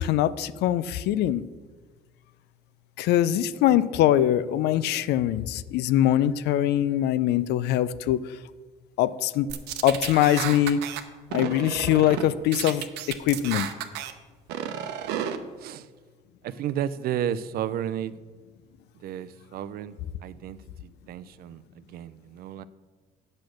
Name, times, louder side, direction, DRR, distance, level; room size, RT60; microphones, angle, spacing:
voice 1, 0.0-1.4 3.0-8.2 9.0-9.5 9.8-10.8 11.3-13.7, left 12 dB, 80° left, 16 dB, 0.4 m, -23 dB
sound 1, 9.5-11.0 11.3-12.3 12.5-14.1 14.5-15.4, right 10 dB, 90° right, 0.8 m, -32 dB
voice 2, 15.6-15.9 16.4-18.1 19.0-20.6 21.1-22.6, right 10 dB, 65° right, 14 dB, 0.5 m, -32 dB
8.5 x 6.4 x 6.3 m, 1.4 s
cardioid pair, 110°, 17 cm